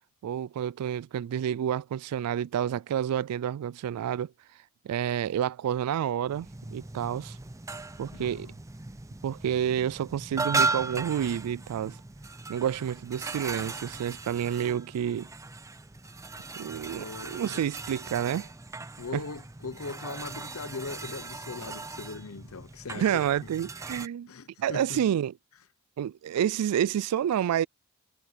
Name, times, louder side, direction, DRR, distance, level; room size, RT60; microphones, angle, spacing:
voice 1, 0.2-4.3 4.8-7.4 8.0-8.5 9.2-12.0 12.5-15.3 16.6-18.5 19.1-19.2 23.0-24.3 24.6-25.3 26.0-27.7, right 9 dB, 90° right, 0.3 m, -29 dB
sound 1, 6.2-24.1, right 3 dB, 15° right, 0.5 m, -37 dB
voice 2, 8.1-8.5 16.6-17.6 19.0-23.2 24.3-25.0, left 3 dB, 70° left, 0.9 m, -40 dB
head